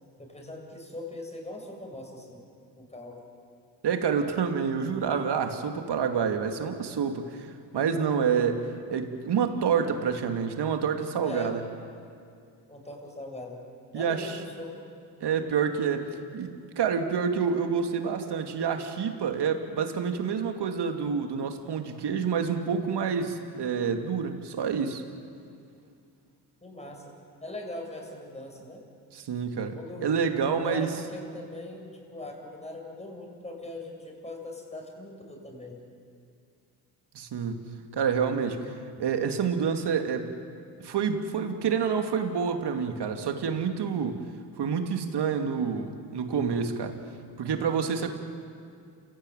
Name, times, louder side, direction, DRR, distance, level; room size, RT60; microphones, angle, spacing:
voice 1, 0.2-2.4 2.8-3.2 11.2-11.5 12.7-13.6 13.9-14.9 26.6-27.0 27.4-28.8 29.7-30.1 30.5-35.8 48.1-48.2, left 2 dB, 15° left, 1 dB, 7.6 m, -40 dB
voice 2, 3.8-11.6 13.9-14.4 15.2-25.0 29.1-29.8 30.0-30.9 37.1-40.3 40.8-44.2 44.6-47.0 47.4-48.1, right 6 dB, 55° right, 5 dB, 2.8 m, -28 dB
29.0 x 17.0 x 9.3 m, 2.3 s
supercardioid pair, 70°, 49 cm